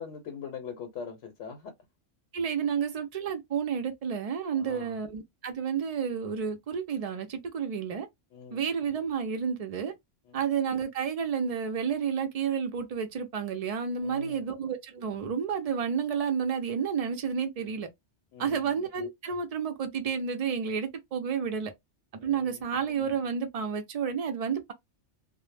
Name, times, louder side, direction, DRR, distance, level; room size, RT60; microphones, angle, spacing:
voice 1, 0.0-1.7 4.5-5.0 8.3-8.6 10.3-10.5 14.0-14.4 18.3-18.8 22.2-22.6, left 6 dB, 75° left, 0.9 m, -42 dB
voice 2, 2.3-8.1 8.5-9.9 10.3-17.9 18.4-21.7 22.2-24.7, right 7 dB, 70° right, 0.3 m, -31 dB
2.0 x 2.0 x 3.1 m
omnidirectional pair, 1.2 m